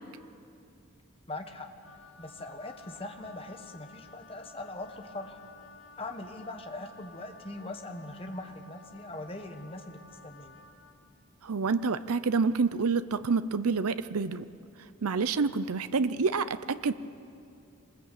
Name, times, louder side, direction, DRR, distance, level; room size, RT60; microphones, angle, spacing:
voice 1, 1.3-1.7 2.2-5.4 6.0-10.6, left 2 dB, 25° left, 5 dB, 1.4 m, -41 dB
Wind instrument woodwind instrument, 1.8-11.0, left 4 dB, 60° left, 2.4 m, -54 dB
voice 2, 11.4-14.5 15.0-16.9, right 4 dB, 85° right, 13 dB, 0.6 m, -28 dB
24.5 x 20.5 x 8.5 m, 2.5 s
head